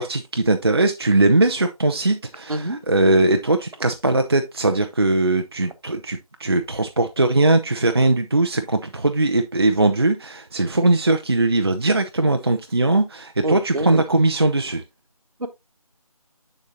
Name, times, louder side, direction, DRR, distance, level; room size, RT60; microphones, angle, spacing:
voice 1, 0.0-14.8, right 2 dB, 40° right, 0.5 m, -20 dB
voice 2, 13.4-14.0 15.4-15.5, right 1 dB, 70° right, 1.1 m, -26 dB
7.1 x 6.8 x 2.6 m
figure-of-eight pair, 165°, 19 cm